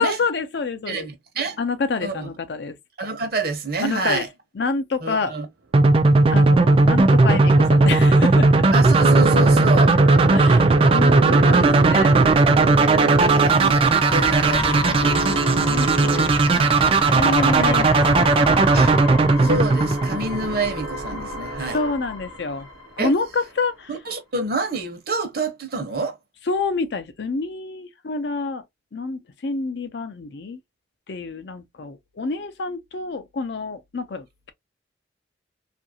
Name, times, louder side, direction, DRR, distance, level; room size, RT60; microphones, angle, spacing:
voice 1, 0.0-1.1 1.6-2.8 3.8-4.3 4.5-5.3 6.3-8.6 10.3-12.3 15.6-18.7 21.1-21.3 21.7-22.7 23.0-24.0 26.5-28.6 28.9-30.6 31.1-34.5, left 4 dB, 60° left, 0.5 m, -28 dB
voice 2, 0.9-1.6 2.0-2.3 3.0-4.3 5.0-5.5 8.7-9.9 13.3-15.5 17.4-17.7 18.7-18.9 19.4-21.8 23.0-23.1 23.9-26.1, right 3 dB, 55° right, 0.8 m, -27 dB
sound 1, 5.7-20.7, right 3 dB, 30° right, 0.3 m, -16 dB
sound 2, 6.4-22.4, right 3 dB, 90° right, 0.6 m, -30 dB
sound 3, 12.7-23.3, left 2 dB, 20° left, 0.6 m, -32 dB
2.7 x 2.5 x 2.7 m
head